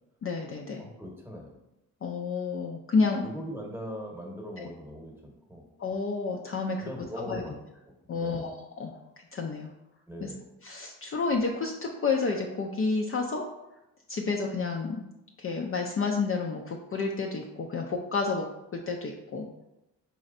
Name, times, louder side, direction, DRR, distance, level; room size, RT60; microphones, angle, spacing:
voice 1, 0.2-0.8 2.0-3.2 4.6-4.7 5.8-6.9 7.3-7.4 8.1-9.0 9.3-9.7 10.2-10.3 10.6-13.4 14.1-15.0 15.4-18.5 18.7-19.5, left 4 dB, 40° left, 1 dB, 0.4 m, -30 dB
voice 2, 0.8-1.5 3.2-5.6 6.8-7.6 8.1-8.5 10.1-10.4, equal, 5° right, 0 dB, 1.0 m, -40 dB
4.2 x 3.1 x 2.5 m, 0.92 s
cardioid pair, 65°, 35 cm